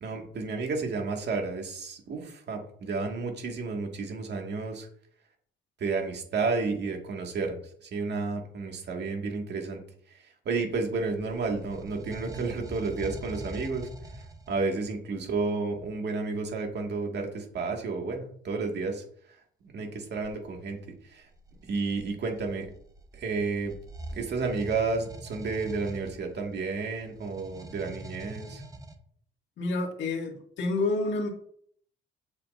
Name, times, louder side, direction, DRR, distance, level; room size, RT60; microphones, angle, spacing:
voice 1, 0.0-4.9 5.8-9.8 10.1-13.9 14.5-19.0 19.6-20.8 21.0-21.3 21.6-22.7 23.1-23.8 24.1-28.6, right 4 dB, 60° right, 2 dB, 1.9 m, -31 dB
sound 1, 10.7-14.8 20.1-20.4 21.2-28.9, right 2 dB, 15° right, 1.1 m, -44 dB
voice 2, 29.6-31.3, left 2 dB, 65° left, 0 dB, 2.0 m, -29 dB
8.5 x 6.8 x 2.6 m, 0.62 s
cardioid pair, 90°, 20 cm